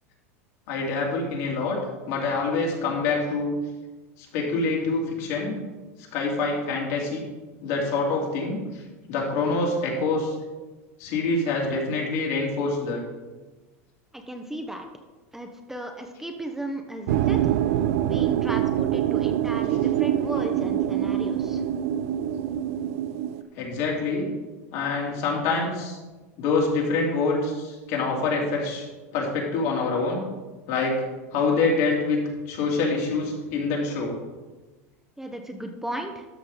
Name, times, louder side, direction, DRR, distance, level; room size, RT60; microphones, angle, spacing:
voice 1, 0.7-1.8 2.1-3.5 4.3-5.6 6.1-7.2 7.6-8.8 9.1-10.3 11.0-13.0 23.6-24.3 24.7-26.0 26.4-28.9 29.1-30.2 30.7-31.0 31.3-32.2 32.5-34.2, left 3 dB, 65° left, -1 dB, 2.8 m, -25 dB
voice 2, 14.1-14.9 15.3-17.5 18.0-21.6 35.2-36.3, right 1 dB, 5° right, 4 dB, 0.9 m, -35 dB
sound 1, 17.1-23.4, right 11 dB, 70° right, 0.5 m, -25 dB
12.5 x 5.7 x 4.0 m, 1.2 s
hypercardioid pair, 100°, 8 cm